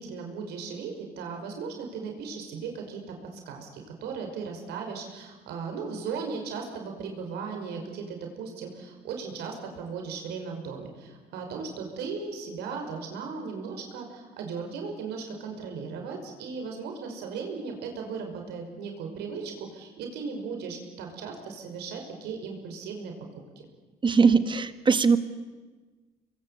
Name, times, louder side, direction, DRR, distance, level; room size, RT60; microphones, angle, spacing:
voice 1, 0.0-3.0 3.5-23.1, right 5 dB, 80° right, 3 dB, 5.6 m, -37 dB
voice 2, 24.0-25.2, right 5 dB, 30° right, 11 dB, 1.6 m, -20 dB
25.5 x 22.0 x 8.4 m, 1.3 s
cardioid pair, 110°, 17 cm